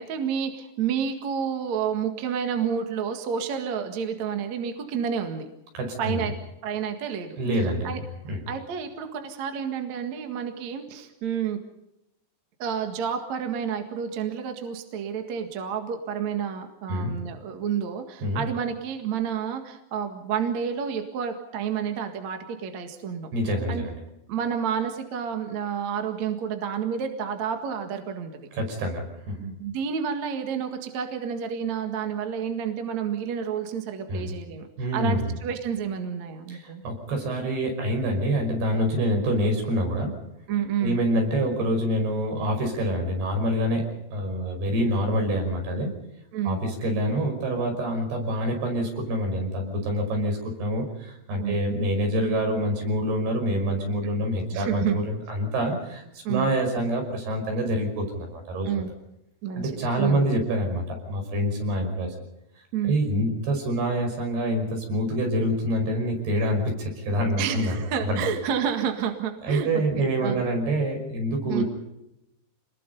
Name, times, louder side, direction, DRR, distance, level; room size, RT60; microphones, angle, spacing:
voice 1, 0.0-5.5 6.0-6.4 6.6-7.4 7.8-8.0 8.5-11.6 12.6-23.3 23.7-23.9 24.3-28.4 29.4-34.7 34.9-36.8 40.5-41.0 46.3-46.6 51.4-51.6 54.0-54.1 54.5-55.0 56.2-56.5 58.7-58.9 59.4-60.3 62.7-62.9 67.4-70.5 71.5-71.6, right 7 dB, 50° right, 5 dB, 2.6 m, -30 dB
voice 2, 5.7-6.2 7.4-7.9 8.3-8.4 16.9-17.2 18.2-18.4 23.3-24.0 28.5-29.4 34.1-34.3 34.8-35.3 36.5-40.1 40.8-43.9 44.1-45.9 46.5-58.7 59.6-62.1 62.8-67.8 68.1-68.2 69.4-71.7, equal, 70° right, 3 dB, 7.5 m, -26 dB
27.5 x 21.0 x 5.3 m, 0.89 s
omnidirectional pair, 4.8 m